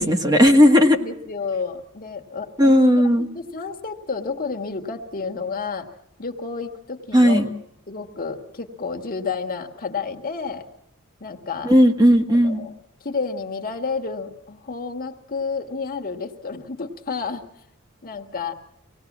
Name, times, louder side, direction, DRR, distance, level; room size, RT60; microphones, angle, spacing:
voice 1, 0.0-1.0 2.6-3.3 7.1-7.4 11.6-12.6, equal, 20° right, 4 dB, 1.5 m, -15 dB
voice 2, 1.0-5.9 6.2-7.5 7.9-10.7 11.2-11.7 12.3-12.7 13.0-17.4 18.0-18.5, left 5 dB, 40° left, 6 dB, 1.7 m, -31 dB
25.0 x 18.5 x 7.3 m, 0.75 s
head